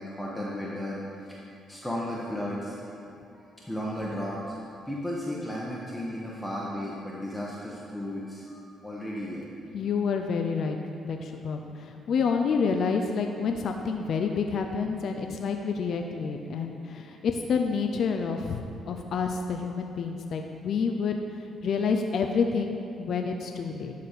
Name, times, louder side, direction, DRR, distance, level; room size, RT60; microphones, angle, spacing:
voice 1, 0.0-1.4 1.7-3.0 3.3-9.5, equal, 5° left, -6 dB, 1.2 m, -35 dB
voice 2, 9.7-10.8 11.0-21.2 21.6-23.9, left 5 dB, 65° left, 4 dB, 0.6 m, -28 dB
12.0 x 4.2 x 6.7 m, 2.6 s
cardioid pair, 90°, 0 cm